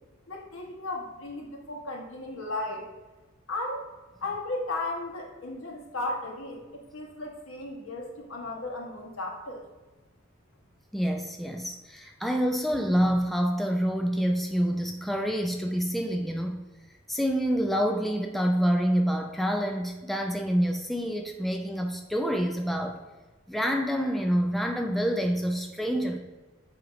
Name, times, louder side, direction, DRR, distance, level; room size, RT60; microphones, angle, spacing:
voice 1, 0.3-2.9 3.5-3.9 4.2-9.6, left 2 dB, 70° left, 0 dB, 1.4 m, -35 dB
voice 2, 10.9-16.6 17.1-23.0 23.5-26.2, equal, ahead, 3 dB, 0.4 m, -27 dB
7.6 x 2.9 x 5.0 m, 1.2 s
head